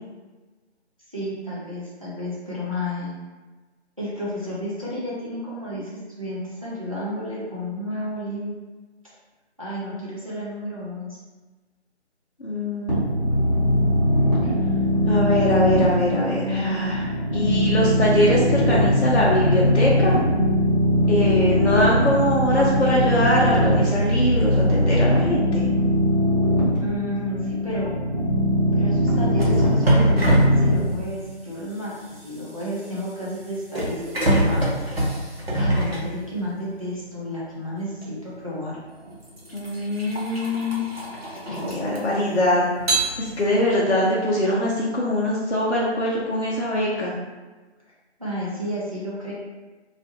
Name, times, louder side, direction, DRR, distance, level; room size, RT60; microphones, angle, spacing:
voice 1, 1.1-3.2 4.0-8.6 9.6-11.2 26.8-28.0 28.8-32.0 32.2-34.0 34.3-34.8 35.5-38.8 48.2-49.3, equal, 30° right, -7 dB, 0.5 m, -32 dB
voice 2, 12.4-13.0 15.1-20.2 21.1-25.7 39.5-40.8 41.5-42.7 43.2-47.1, left 1 dB, 70° left, -5 dB, 0.6 m, -22 dB
sound 1, 12.9-30.8, equal, 35° left, 0.9 m, -21 dB
sound 2, 29.1-36.7 38.0-38.2 38.9-42.3 42.8-43.7, right 1 dB, 60° right, 0.7 m, -25 dB
2.4 x 2.1 x 2.8 m, 1.3 s
figure-of-eight pair, 160°, 34 cm